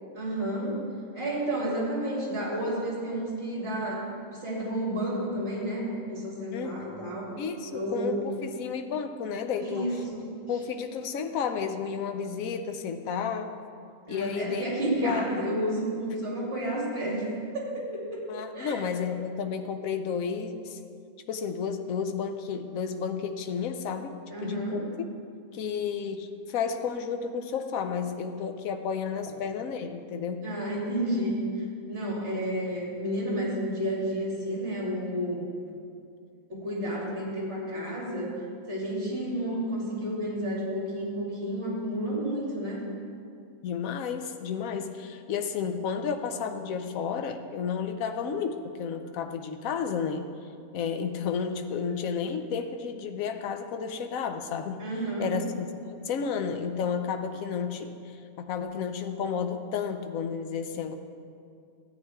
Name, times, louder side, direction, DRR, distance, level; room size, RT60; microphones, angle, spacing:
voice 1, 0.1-0.8 1.1-4.1 4.3-7.3 7.7-8.2 9.6-10.3 14.1-17.3 17.5-18.2 18.5-18.8 24.3-24.8 30.4-35.4 36.5-38.4 38.7-42.8 54.8-55.3, right 1 dB, 45° right, -5 dB, 3.1 m, -31 dB
voice 2, 7.4-10.0 10.5-13.5 14.1-14.7 15.0-15.5 18.3-20.8 21.3-24.1 24.4-24.8 25.5-30.4 43.6-50.3 50.7-54.8 55.2-58.0 58.4-60.9, left 6 dB, 75° left, 7 dB, 1.1 m, -32 dB
13.5 x 8.8 x 3.5 m, 2.4 s
omnidirectional pair, 1.5 m